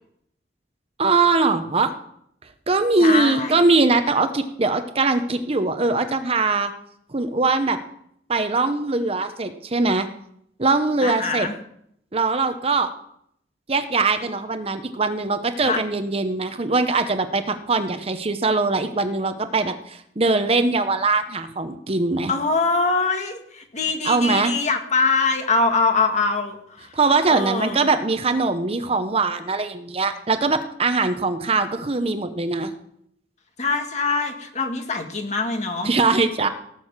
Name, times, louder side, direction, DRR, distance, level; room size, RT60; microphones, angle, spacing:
voice 1, 1.0-1.9 2.7-6.7 7.1-7.8 8.3-10.1 10.6-11.5 12.1-12.9 13.7-22.3 24.0-24.5 26.9-32.7 35.8-36.5, right 3 dB, 35° right, 9 dB, 0.9 m, -21 dB
voice 2, 3.0-3.6 11.0-11.5 15.6-15.8 22.3-26.9 27.3-27.9 33.6-35.9, left 4 dB, 40° left, 4 dB, 1.8 m, -23 dB
17.5 x 6.4 x 7.3 m, 0.71 s
head